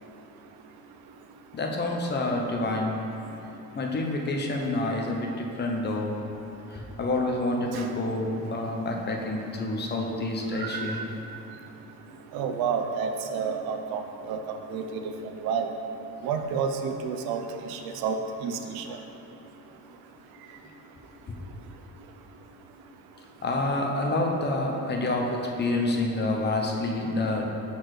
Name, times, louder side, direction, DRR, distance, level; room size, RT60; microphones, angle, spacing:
voice 1, 1.5-2.9 3.7-6.1 6.7-11.0 21.3-21.4 23.4-27.5, left 2 dB, 30° left, 1 dB, 0.7 m, -28 dB
voice 2, 10.6-11.0 12.3-14.4 14.7-15.0 15.4-15.7 16.2-17.4 17.7-18.2 18.4-18.8, right 6 dB, 90° right, 5 dB, 0.6 m, -30 dB
6.2 x 4.2 x 4.7 m, 2.9 s
cardioid pair, 130°, 35 cm